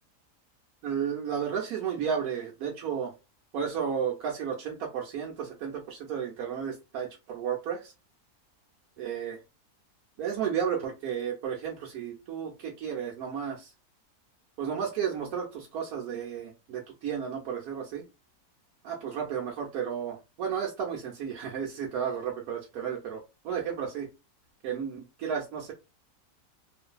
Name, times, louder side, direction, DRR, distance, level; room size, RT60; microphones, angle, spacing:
voice 1, 0.8-3.1 3.5-7.9 9.0-9.4 10.2-13.7 14.6-18.0 18.8-24.1 24.6-25.7, right 7 dB, 80° right, -2 dB, 1.1 m, -33 dB
2.6 x 2.5 x 2.2 m, 0.27 s
omnidirectional pair, 1.6 m